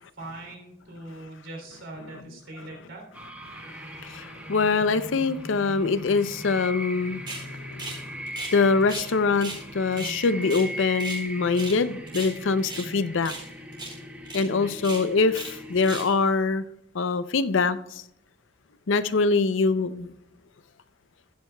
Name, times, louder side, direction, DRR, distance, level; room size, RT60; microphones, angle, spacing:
voice 1, 0.2-3.1 9.8-10.2 12.8-13.1 14.5-14.7, right 2 dB, 80° right, 1 dB, 3.1 m, -41 dB
sound 1, 3.1-16.1, equal, 5° right, 0.9 m, -39 dB
voice 2, 4.0-8.0 8.5-13.3 14.3-16.6 16.9-18.0 18.9-20.1, left 4 dB, 75° left, 13 dB, 0.5 m, -24 dB
sound 2, 7.3-7.5 7.8-8.0 8.3-9.1 9.4-9.6 9.9-11.2 11.5-11.8 12.1-12.9 13.2-13.5 13.7-14.0 14.2-14.4 14.8-15.5 15.8-16.1, right 2 dB, 25° right, 4.3 m, -37 dB
16.0 x 9.3 x 2.2 m, 0.78 s
head